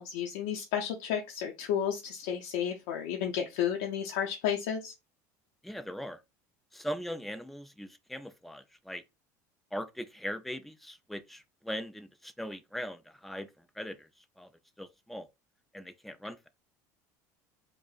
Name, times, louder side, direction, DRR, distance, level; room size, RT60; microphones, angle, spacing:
voice 1, 0.0-4.9, left 9 dB, 80° left, 0.5 m, -32 dB
voice 2, 5.6-6.2 6.7-9.0 9.7-14.1 14.4-14.5 14.8-15.3 15.7-16.5, equal, ahead, 0.3 m, -40 dB
4.8 x 2.0 x 2.4 m
supercardioid pair, 115°, 9 cm